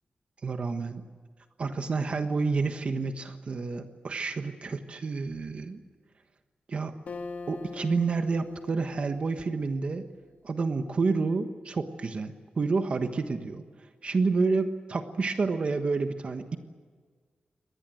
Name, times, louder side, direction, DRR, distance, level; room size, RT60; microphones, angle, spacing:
voice 1, 0.4-1.0 1.6-5.8 6.7-7.0 7.5-10.0 10.4-13.6 14.0-16.6, right 4 dB, 45° right, 7 dB, 1.3 m, -29 dB
Acoustic guitar, 7.1-10.6, left 3 dB, 60° left, 2.1 m, -43 dB
25.0 x 19.5 x 7.8 m, 1.5 s
wide cardioid pair, 170°, 3 cm